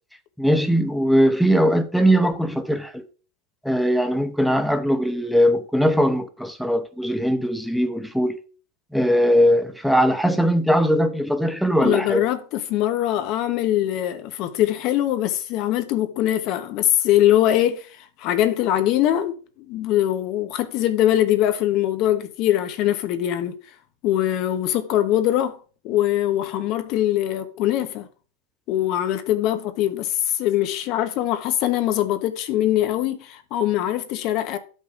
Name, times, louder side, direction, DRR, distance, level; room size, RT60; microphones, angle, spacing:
voice 1, 0.4-3.0 3.6-8.4 8.9-12.3, equal, ahead, 0.7 m, -20 dB
voice 2, 11.8-17.9 18.2-19.4 19.7-23.6 24.0-25.6 25.8-28.1 28.7-34.6, left 12 dB, 45° left, 1.0 m, -22 dB
12.5 x 5.5 x 2.5 m
supercardioid pair, 135°, 0 cm